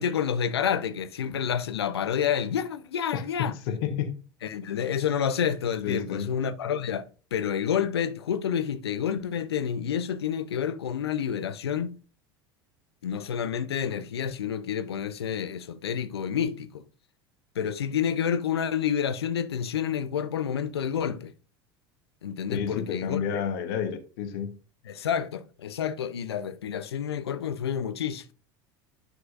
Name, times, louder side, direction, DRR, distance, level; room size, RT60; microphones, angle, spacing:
voice 1, 0.0-3.6 4.4-7.0 7.3-12.0 13.0-16.8 17.6-21.3 22.2-23.4 24.9-28.3, left 8 dB, 85° left, 0.6 m, -29 dB
voice 2, 3.1-4.2 5.8-6.3 22.5-24.5, left 8 dB, 65° left, 1.2 m, -30 dB
9.9 x 6.1 x 2.5 m
hypercardioid pair, 80°, 13 cm